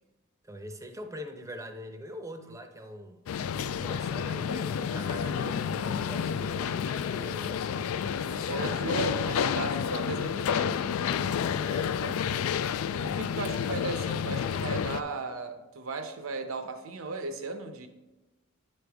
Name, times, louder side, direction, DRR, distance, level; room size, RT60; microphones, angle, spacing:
voice 1, 0.4-3.2 3.5-7.6 8.2-9.1 11.7-12.0, equal, 15° right, 6 dB, 0.6 m, -43 dB
sound 1, 3.3-15.0, left 7 dB, 85° left, 0.3 m, -30 dB
voice 2, 8.4-10.8 12.0-12.1 13.0-17.9, right 3 dB, 80° right, 8 dB, 0.7 m, -36 dB
9.9 x 5.3 x 3.4 m, 1.1 s
head